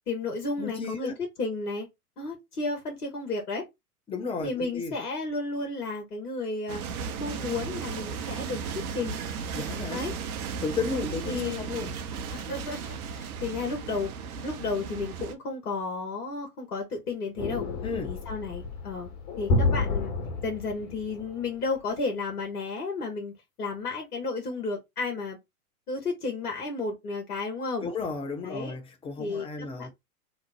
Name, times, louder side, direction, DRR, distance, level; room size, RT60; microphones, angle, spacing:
voice 1, 0.1-1.1 1.4-1.9 2.2-3.7 4.4-6.8 7.2-9.2 9.9-10.1 10.9-11.7 12.3-14.1 14.4-17.7 18.0-19.1 19.4-20.1 20.4-23.3 23.6-25.4 25.9-27.9 28.4-28.8 29.2-29.5 29.8-29.9, left 3 dB, 80° left, 1.3 m, -32 dB
voice 2, 0.6-1.1 4.1-4.9 9.5-10.0 10.6-11.9 17.8-18.1 27.8-29.9, left 4 dB, 10° left, 0.6 m, -33 dB
sound 1, 6.7-15.4, right 6 dB, 70° right, 0.7 m, -35 dB
sound 2, 17.4-21.5, left 2 dB, 45° left, 1.3 m, -30 dB
3.0 x 2.1 x 3.9 m
figure-of-eight pair, 100°, 46 cm